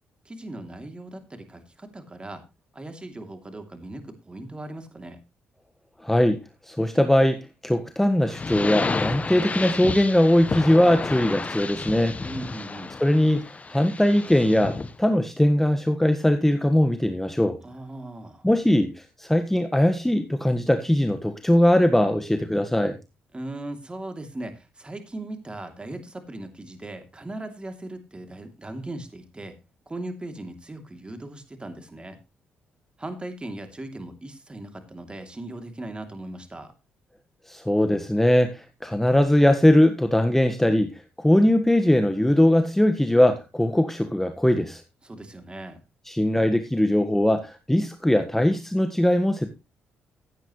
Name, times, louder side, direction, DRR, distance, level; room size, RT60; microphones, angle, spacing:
voice 1, 0.2-2.4 2.7-5.2 12.2-12.9 17.6-18.5 23.3-29.5 29.9-32.2 33.0-36.7 45.0-45.8, right 1 dB, 20° right, 6 dB, 3.0 m, -38 dB
voice 2, 6.0-12.2 13.0-17.6 18.4-23.0 37.5-44.8 46.1-49.5, left 1 dB, 5° left, 7 dB, 1.5 m, -21 dB
sound 1, 8.3-15.0, left 4 dB, 30° left, 1.3 m, -31 dB
16.0 x 9.0 x 3.2 m, 0.27 s
supercardioid pair, 60°, 5 cm